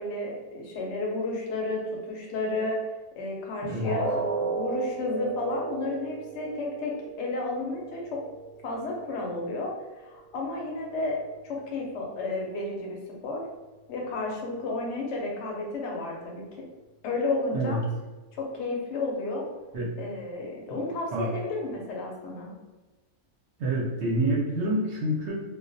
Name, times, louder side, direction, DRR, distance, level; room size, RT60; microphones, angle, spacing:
voice 1, 0.0-1.8 2.1-2.8 3.2-8.2 8.6-11.2 11.4-13.4 13.9-16.4 17.0-17.8 18.3-19.4 20.0-22.5, left 2 dB, 65° left, -1 dB, 0.8 m, -32 dB
voice 2, 3.6-4.0 17.5-17.8 19.7-19.9 20.7-20.8 21.1-21.3 23.6-25.3, right 1 dB, 65° right, -3 dB, 0.8 m, -27 dB
sound 1, 3.8-9.8 10.2-10.4 10.9-11.0, right 4 dB, 5° right, 0.4 m, -35 dB
2.3 x 2.1 x 2.5 m, 1.2 s
omnidirectional pair, 1.4 m